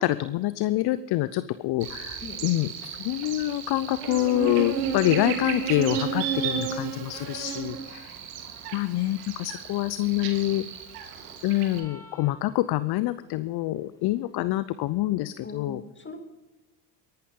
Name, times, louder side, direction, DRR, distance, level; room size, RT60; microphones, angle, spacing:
voice 1, 0.0-8.1 8.7-10.7 11.4-15.8, left 16 dB, 50° left, 15 dB, 0.6 m, -26 dB
Buzz, 1.8-11.8, right 7 dB, 75° right, 2.2 m, -33 dB
sound 1, 11.6-13.1, left 1 dB, 5° left, 3.8 m, -51 dB
voice 2, 15.4-16.2, left 3 dB, 25° left, 6 dB, 2.4 m, -40 dB
22.5 x 11.5 x 3.7 m, 1.2 s
hypercardioid pair, 65°, 49 cm